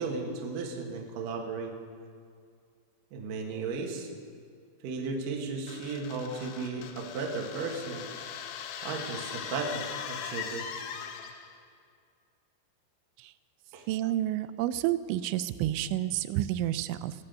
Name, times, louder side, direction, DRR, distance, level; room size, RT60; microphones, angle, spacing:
voice 1, 0.0-1.7 3.1-4.1 4.8-8.1 8.8-10.7 13.7-13.9, right 4 dB, 60° right, 1 dB, 2.5 m, -35 dB
sound 1, 5.7-11.6, left 8 dB, 90° left, 3.4 m, -40 dB
voice 2, 13.9-17.1, right 13 dB, 85° right, 14 dB, 3.0 m, -30 dB
20.5 x 8.6 x 6.6 m, 2.2 s
omnidirectional pair, 5.4 m